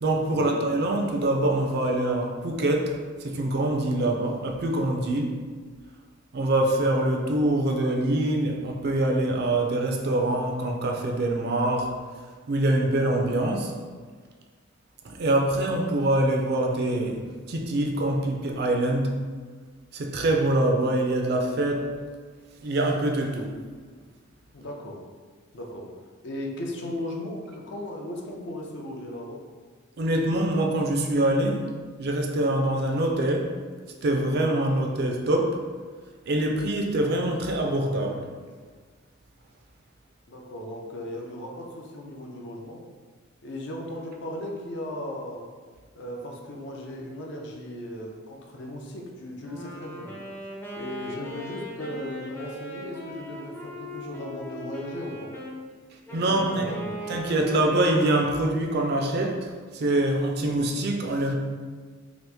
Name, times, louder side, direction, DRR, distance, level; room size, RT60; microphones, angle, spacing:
voice 1, 0.0-5.3 6.3-11.9 12.5-13.7 15.0-19.2 19.9-21.9 22.6-23.5 30.0-31.7 32.0-33.5 34.0-35.6 36.3-38.3 56.1-56.7 57.1-61.3, right 1 dB, 50° right, 2 dB, 0.4 m, -24 dB
voice 2, 24.5-25.0 25.5-25.9 26.2-29.4 40.3-42.8 43.4-45.5 45.9-50.1 50.8-55.3 56.1-57.0, left 1 dB, 60° left, 0 dB, 0.5 m, -37 dB
Wind instrument woodwind instrument, 49.4-55.6 56.1-58.7, equal, 10° left, 0.4 m, -39 dB
2.9 x 2.4 x 3.4 m, 1.5 s
head